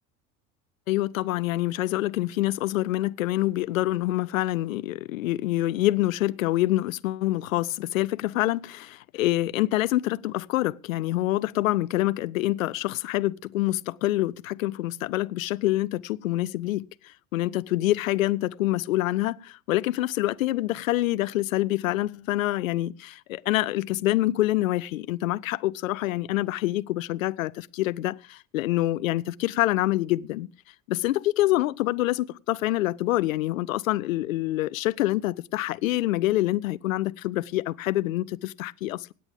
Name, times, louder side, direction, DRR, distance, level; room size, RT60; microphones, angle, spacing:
voice 1, 0.9-16.9 17.3-30.5 30.9-39.1, left 16 dB, 70° left, 0.6 m, -26 dB
25.0 x 8.9 x 3.5 m
figure-of-eight pair, 70°, 42 cm